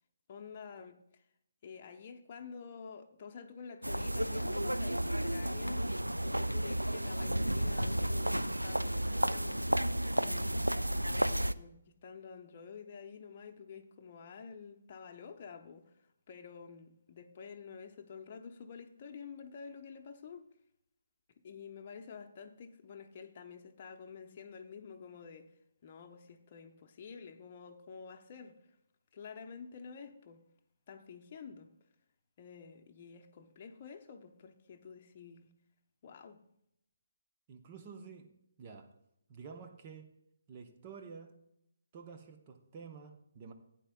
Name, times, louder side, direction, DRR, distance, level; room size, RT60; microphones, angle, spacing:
voice 1, 0.3-1.2 1.6-9.6 10.1-10.7 11.0-16.0 16.3-20.4 21.4-25.5 25.8-28.8 29.1-30.4 30.9-31.7 32.4-35.5 36.0-36.4, left 6 dB, 35° left, 0.8 m, -49 dB
sound 1, 3.8-11.5, right 1 dB, 85° right, 0.3 m, -32 dB
voice 2, 37.5-38.3 38.6-38.9 39.3-40.1 40.5-41.4 41.9-43.5, right 5 dB, 30° right, 0.8 m, -50 dB
15.5 x 9.0 x 2.3 m
figure-of-eight pair, 140°, 0 cm